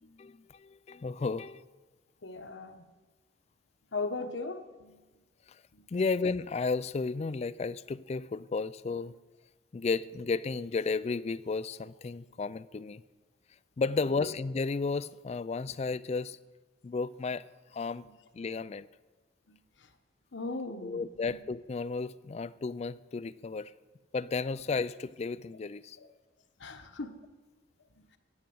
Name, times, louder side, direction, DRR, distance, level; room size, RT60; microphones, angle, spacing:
voice 1, 0.0-1.6 5.5-5.6 5.9-9.2 9.7-13.0 13.8-16.4 16.8-17.4 17.7-18.1 18.3-18.9 20.8-23.7 24.1-26.0, left 4 dB, 35° left, 17 dB, 0.3 m, -33 dB
voice 2, 2.2-2.8 3.9-5.0 5.7-5.8 14.0-14.3 20.3-21.4 26.6-27.1, left 3 dB, 80° left, 7 dB, 1.1 m, -38 dB
10.5 x 9.7 x 7.7 m, 1.3 s
head